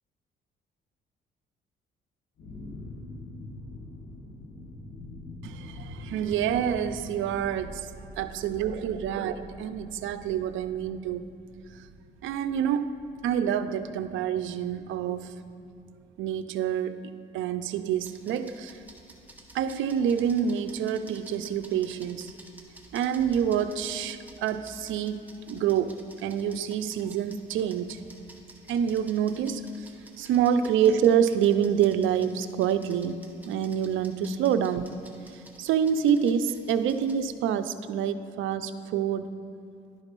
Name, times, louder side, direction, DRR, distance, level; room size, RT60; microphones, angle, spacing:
sound 1, 2.4-16.0, left 1 dB, 70° left, 1.2 m, -45 dB
voice 1, 5.4-7.9 8.2-11.3 12.2-12.9 13.2-15.3 16.2-18.8 19.5-22.3 22.9-28.0 28.7-29.9 30.2-33.2 33.5-34.9 35.6-39.4, right 8 dB, 80° right, 11 dB, 0.4 m, -27 dB
sound 2, 17.9-37.2, right 1 dB, 10° right, 1.0 m, -52 dB
11.5 x 4.0 x 5.3 m, 2.6 s
cardioid pair, 90°, 20 cm